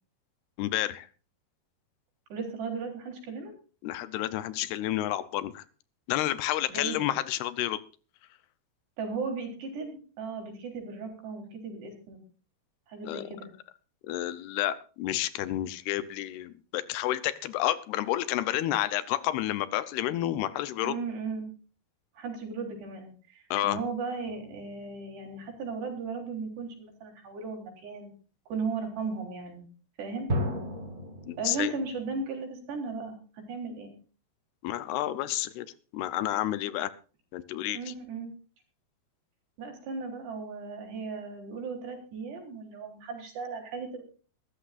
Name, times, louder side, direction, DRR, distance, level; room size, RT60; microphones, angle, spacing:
voice 1, 0.6-1.1 3.8-5.7 6.1-7.8 13.0-13.3 14.1-21.0 23.5-23.8 31.3-31.7 34.6-36.9 37.3-37.9, left 13 dB, 80° left, 14 dB, 2.6 m, -30 dB
voice 2, 2.3-3.5 6.7-7.0 9.0-12.2 12.9-13.5 20.8-21.5 22.2-28.1 28.5-29.7 30.0-30.3 31.4-33.9 37.7-38.3 39.6-44.0, right 4 dB, 80° right, 2 dB, 5.8 m, -36 dB
sound 1, 24.3-25.6 30.3-32.2, equal, 45° right, 1.0 m, -35 dB
23.0 x 13.5 x 2.5 m, 0.37 s
omnidirectional pair, 4.7 m